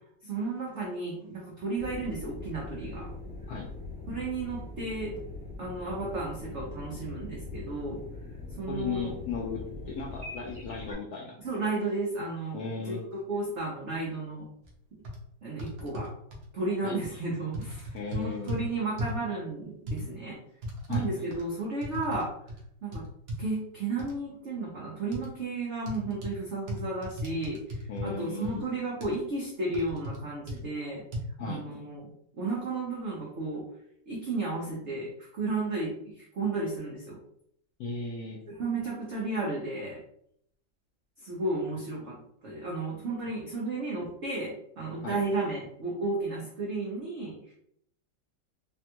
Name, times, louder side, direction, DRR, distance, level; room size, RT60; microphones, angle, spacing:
voice 1, 0.2-3.1 4.1-5.1 5.6-8.0 8.6-9.1 11.4-14.4 15.4-16.1 16.5-20.4 20.9-22.3 22.8-23.0 23.4-31.0 31.4-32.0 32.3-33.6 34.1-37.2 38.5-40.0 41.2-47.5, right 3 dB, 80° right, -4 dB, 0.6 m, -33 dB
sound 1, 1.8-10.9, left 3 dB, 5° right, 0.7 m, -42 dB
voice 2, 8.7-11.3 12.5-13.0 16.8-17.0 17.9-18.6 20.9-21.1 27.9-28.7 31.4-31.6 37.8-38.4 45.0-45.2, left 5 dB, 75° left, -2 dB, 0.9 m, -36 dB
sound 2, 14.6-14.7 15.0-15.2 15.6-16.4 17.0-17.2 17.5-18.6 19.0-19.2 19.9-20.0 20.6-22.2 22.5-22.6 22.9-23.4 24.0-24.1 25.1-25.3 25.9-26.3 26.7-28.1 28.4-28.5 29.0-29.2 29.7-30.2 30.5-30.6 31.1-31.2, equal, 60° right, 1.0 m, -36 dB
3.4 x 2.2 x 2.8 m, 0.71 s
omnidirectional pair, 2.1 m